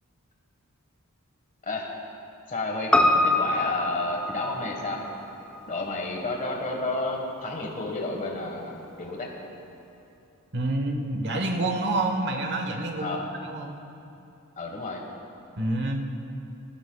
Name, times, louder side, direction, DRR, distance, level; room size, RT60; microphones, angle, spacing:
voice 1, 2.5-2.9 3.2-5.0 5.7-9.3 13.0-13.3 14.6-15.0, left 2 dB, 35° left, 0 dB, 1.4 m, -31 dB
Piano, 2.9-7.4 7.7-7.8, left 1 dB, 5° left, 0.7 m, -26 dB
voice 2, 10.5-13.8 15.6-16.0, right 2 dB, 50° right, 3 dB, 1.1 m, -28 dB
19.5 x 15.0 x 2.3 m, 2.7 s
head